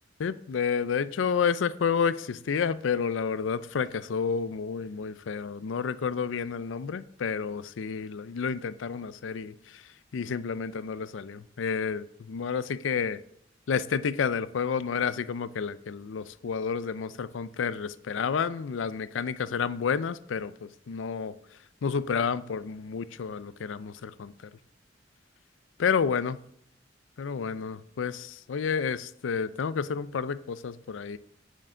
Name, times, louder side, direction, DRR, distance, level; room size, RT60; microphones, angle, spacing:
voice 1, 0.2-13.2 13.7-21.4 21.8-24.5 25.8-26.4 27.2-31.2, left 6 dB, 90° left, 16 dB, 0.4 m, -30 dB
6.5 x 6.3 x 5.5 m, 0.68 s
head